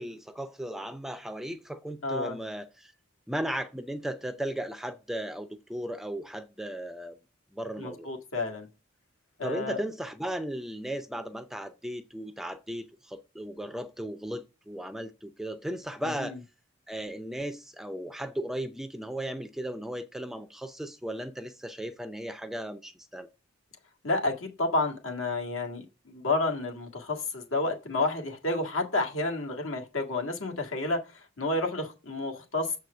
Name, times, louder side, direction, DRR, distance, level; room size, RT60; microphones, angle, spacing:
voice 1, 0.0-2.9 3.3-7.2 7.5-8.1 9.4-16.4 16.9-23.3, right 1 dB, ahead, 0.4 m, -36 dB
voice 2, 2.0-2.4 7.8-8.7 9.4-9.8 16.2-16.4 24.0-32.8, left 2 dB, 75° left, 1.8 m, -30 dB
6.9 x 4.6 x 6.7 m
head